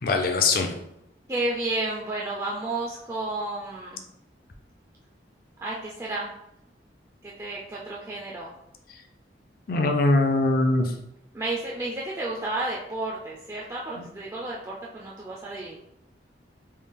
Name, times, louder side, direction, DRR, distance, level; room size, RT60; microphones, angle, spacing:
voice 1, 0.0-0.7 9.7-10.9 14.0-14.1, left 2 dB, 50° left, 4 dB, 0.5 m, -22 dB
voice 2, 1.3-4.0 5.6-6.3 7.2-8.5 11.3-15.8, right 2 dB, 15° right, -4 dB, 0.3 m, -31 dB
3.3 x 2.3 x 3.5 m, 0.83 s
head